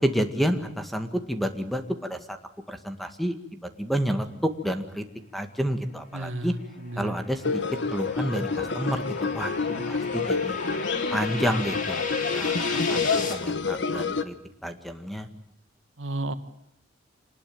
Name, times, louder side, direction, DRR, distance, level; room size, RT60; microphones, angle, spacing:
voice 1, 0.0-2.4 2.7-3.4 3.8-5.0 5.3-6.5 7.0-7.6 7.9-9.5 9.9-10.6 11.1-12.0 12.3-14.4 14.6-15.3, equal, ahead, 8 dB, 2.0 m, -29 dB
voice 2, 6.1-7.1 9.6-9.9 16.0-16.3, right 1 dB, 85° right, 9 dB, 1.9 m, -33 dB
sound 1, 6.5-13.3, left 4 dB, 45° left, 3.9 m, -37 dB
sound 2, 7.4-14.2, left 4 dB, 65° left, 1.3 m, -28 dB
26.0 x 20.0 x 8.9 m, 0.78 s
head